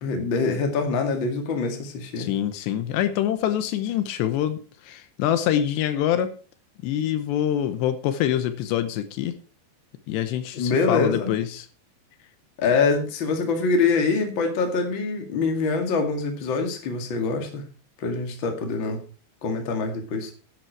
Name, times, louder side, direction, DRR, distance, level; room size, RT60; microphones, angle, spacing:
voice 1, 0.0-2.3 10.5-11.3 12.6-17.6 18.0-19.0 19.4-20.3, left 4 dB, 40° left, 4 dB, 2.0 m, -24 dB
voice 2, 2.2-4.6 4.8-6.3 6.8-9.3 10.1-11.7, left 11 dB, 80° left, 10 dB, 3.0 m, -25 dB
11.0 x 10.5 x 4.7 m, 0.37 s
omnidirectional pair, 5.1 m